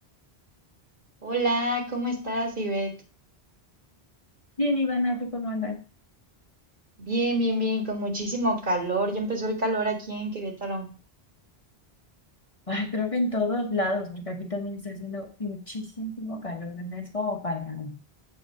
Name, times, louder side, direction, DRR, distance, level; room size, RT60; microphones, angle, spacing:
voice 1, 1.2-2.9 7.0-10.9, right 1 dB, 55° right, 3 dB, 1.9 m, -27 dB
voice 2, 4.6-5.8 12.7-18.0, left 2 dB, 35° left, 2 dB, 0.9 m, -29 dB
7.6 x 3.9 x 6.4 m, 0.35 s
omnidirectional pair, 1.0 m